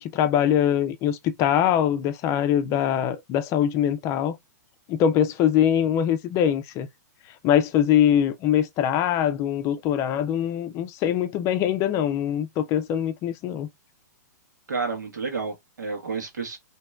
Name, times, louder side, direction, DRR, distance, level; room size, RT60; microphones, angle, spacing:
voice 1, 0.0-4.4 4.9-6.9 7.4-13.7, left 10 dB, 30° left, 0.5 m, -23 dB
voice 2, 14.7-16.6, right 4 dB, 80° right, 1.3 m, -30 dB
3.0 x 2.8 x 2.3 m
hypercardioid pair, 115°, 9 cm